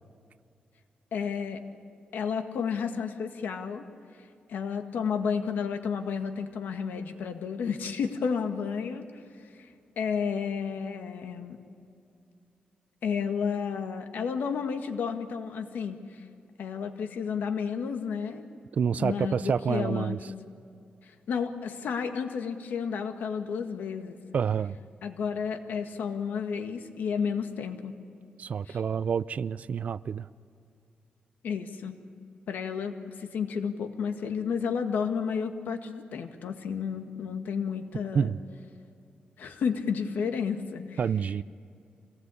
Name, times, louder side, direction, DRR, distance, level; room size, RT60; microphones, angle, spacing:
voice 1, 1.1-1.6 2.1-3.9 4.5-9.1 9.6-11.6 13.0-16.2 16.6-18.5 19.0-20.2 21.0-24.2 25.0-28.0 28.7-28.8 31.4-32.0 32.5-38.3 39.4-41.0, left 6 dB, 90° left, 1.8 m, -31 dB
voice 2, 18.7-20.2 24.3-24.8 28.4-30.3 38.1-38.4 41.0-41.4, right 7 dB, 55° right, 0.5 m, -28 dB
25.5 x 19.0 x 8.5 m
wide cardioid pair, 140°, 3 cm